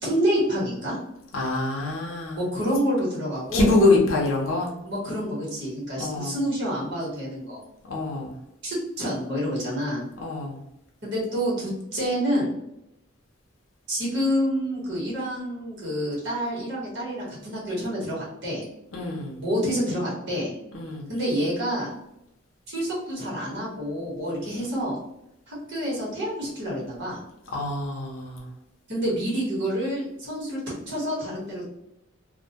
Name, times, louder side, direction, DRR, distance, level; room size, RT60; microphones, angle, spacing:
voice 1, 0.0-1.0 2.3-3.8 4.8-7.6 8.6-10.1 11.0-12.5 13.9-18.6 19.4-20.5 21.1-21.9 22.7-25.0 25.5-27.2 28.9-31.7, equal, 55° right, -5 dB, 1.0 m, -28 dB
voice 2, 1.3-2.4 3.5-4.8 6.0-6.4 7.9-8.3 10.2-10.6 18.9-19.4 20.7-21.1 27.5-28.5, left 2 dB, 65° left, -2 dB, 0.6 m, -24 dB
2.2 x 2.1 x 2.7 m, 0.84 s
head